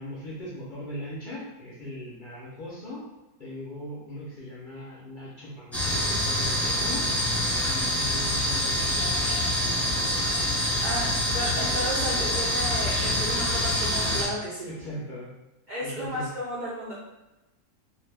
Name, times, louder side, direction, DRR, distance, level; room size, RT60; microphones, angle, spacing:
voice 1, 0.0-3.0 3.4-7.0 7.7-9.2 9.6-9.7 14.6-15.3 15.8-16.3, left 1 dB, 55° left, -6 dB, 0.5 m, -39 dB
sound 1, 5.7-14.3, left 1 dB, ahead, 0.8 m, -26 dB
voice 2, 10.8-14.7 15.7-16.9, equal, 75° right, -8 dB, 0.4 m, -33 dB
2.6 x 2.1 x 3.3 m, 1.0 s
omnidirectional pair, 1.6 m